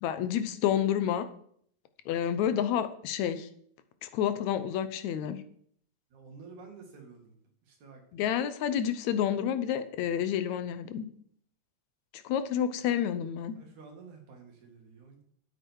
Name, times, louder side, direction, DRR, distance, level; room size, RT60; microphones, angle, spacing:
voice 1, 0.0-1.2 2.1-3.5 4.0-5.4 8.1-11.1 12.1-13.6, left 9 dB, 75° left, 11 dB, 2.1 m, -29 dB
voice 2, 6.1-7.4 7.7-8.0 13.6-15.2, right 4 dB, 80° right, 2 dB, 3.6 m, -50 dB
11.5 x 8.9 x 4.6 m, 0.64 s
omnidirectional pair, 3.3 m